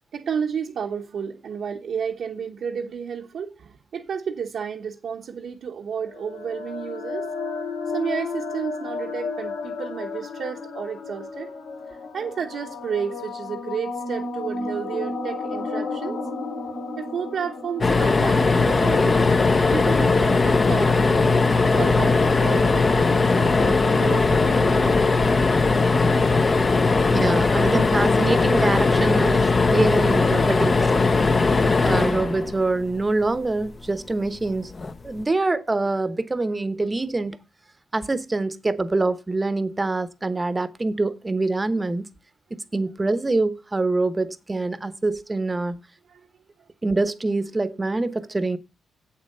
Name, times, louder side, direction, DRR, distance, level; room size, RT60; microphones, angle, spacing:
voice 1, 0.1-7.3 7.9-11.5 11.9-16.3 17.0-19.2 19.7-21.1 21.6-25.0 46.1-46.3, right 7 dB, 65° right, 1.0 m, -32 dB
sound 1, 6.0-19.7, left 3 dB, 85° left, 2.9 m, -33 dB
sound 2, 17.8-33.1 34.7-34.9 35.2-35.3, left 3 dB, 30° left, 0.9 m, -19 dB
voice 2, 27.1-31.0 31.8-34.7 35.0-37.4 37.9-42.1 42.5-45.8 46.8-48.6, right 2 dB, 20° right, 1.0 m, -25 dB
8.1 x 7.5 x 6.7 m
cardioid pair, 105°, 0 cm